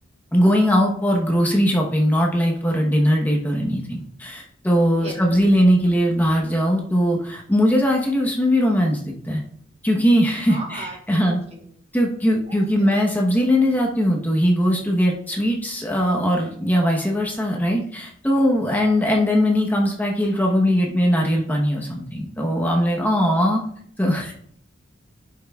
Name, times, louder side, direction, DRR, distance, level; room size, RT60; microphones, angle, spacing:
voice 1, 0.3-9.4 9.8-11.4 11.9-23.6 24.0-24.3, equal, 10° left, -1 dB, 1.0 m, -20 dB
voice 2, 10.5-11.6 12.5-12.9 23.2-23.4, right 2 dB, 35° right, 1 dB, 1.3 m, -38 dB
11.0 x 5.7 x 2.3 m, 0.63 s
head